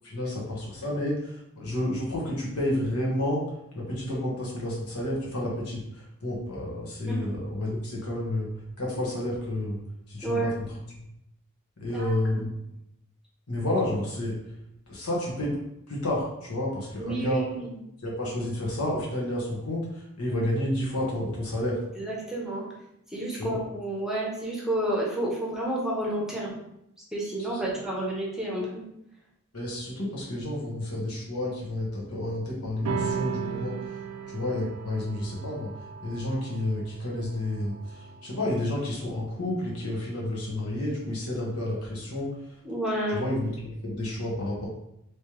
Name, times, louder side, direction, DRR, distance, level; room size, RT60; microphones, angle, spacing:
voice 1, 0.0-3.4 3.7-8.5 8.8-9.8 10.1-10.8 11.8-12.5 13.5-14.3 14.9-15.5 15.9-17.5 18.0-21.8 23.3-23.6 27.5-27.8 29.5-33.8 34.3-35.7 36.0-42.3 43.1-44.7, left 1 dB, 85° left, -3 dB, 1.3 m, -30 dB
voice 2, 10.2-10.6 11.9-12.4 17.0-17.7 22.0-22.6 23.1-26.5 27.1-28.8 42.6-43.3, right 1 dB, ahead, -4 dB, 0.8 m, -30 dB
sound 1, 32.8-39.6, right 6 dB, 85° right, 0.4 m, -36 dB
3.3 x 3.2 x 3.0 m, 0.81 s
head